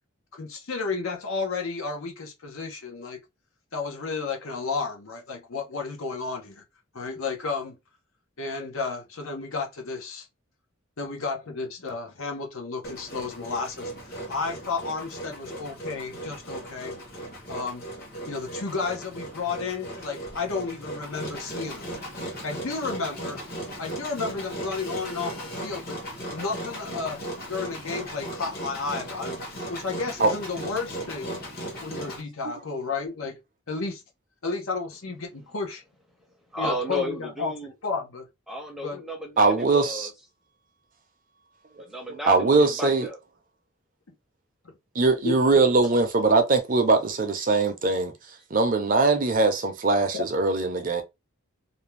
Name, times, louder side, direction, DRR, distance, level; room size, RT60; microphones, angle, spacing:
voice 1, 0.3-3.2 3.7-6.6 6.9-7.8 8.4-10.3 11.0-17.0 17.5-17.8 18.3-21.9 22.4-23.4 23.8-26.0 26.3-27.2 27.5-29.4 29.7-31.3 31.8-33.4 33.7-34.0 34.4-35.8 36.6-37.5 37.8-38.3 38.8-39.0 44.6-44.7 45.2-45.4 50.1-50.2, left 4 dB, 70° left, 0.7 m, -32 dB
Engine, 12.8-32.2, right 1 dB, 45° left, 1.0 m, -37 dB
voice 2, 36.5-37.7 38.5-40.1 41.8-43.2, equal, ahead, 0.6 m, -33 dB
voice 3, 39.4-40.1 42.3-43.1 45.0-48.1 48.5-51.0, right 3 dB, 40° right, 0.5 m, -21 dB
2.5 x 2.2 x 3.1 m
head